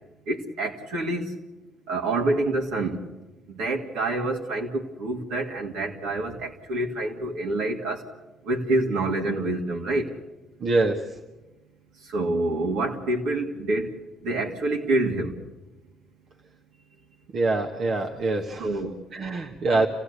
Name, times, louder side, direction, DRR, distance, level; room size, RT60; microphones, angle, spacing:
voice 1, 0.3-1.3 1.9-3.0 3.6-8.0 8.5-10.1 12.1-13.9 14.2-15.3 18.6-18.9, right 2 dB, 75° right, 1 dB, 2.5 m, -27 dB
voice 2, 10.6-11.2 17.3-18.7 19.1-19.9, right 3 dB, 55° right, 1 dB, 1.5 m, -24 dB
27.5 x 16.0 x 8.3 m, 1.1 s
hypercardioid pair, 50°, 0 cm